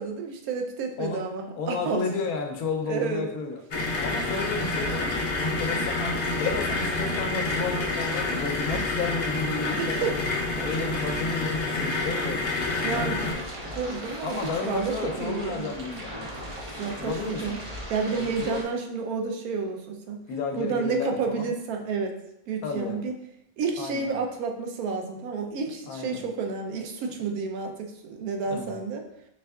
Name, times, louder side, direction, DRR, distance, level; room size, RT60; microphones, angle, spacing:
voice 1, 0.0-2.0 2.9-3.3 5.7-5.8 9.8-10.1 12.8-13.3 13.7-15.7 16.8-17.6 17.9-20.2 20.6-22.2 22.5-23.1 23.6-29.1, right 4 dB, 80° right, 3 dB, 1.1 m, -30 dB
voice 2, 1.6-3.6 4.0-10.2 10.6-12.4 12.9-13.2 14.2-16.3 17.0-17.6 18.1-18.6 20.3-21.5 22.6-23.0 23.8-24.1 25.9-26.2 28.5-28.7, left 4 dB, 85° left, 3 dB, 1.1 m, -32 dB
sound 1, 3.7-13.3, left 2 dB, 55° left, 1.0 m, -28 dB
sound 2, 13.2-18.6, equal, 35° right, 0.5 m, -38 dB
4.6 x 3.5 x 2.3 m, 0.79 s
omnidirectional pair, 1.5 m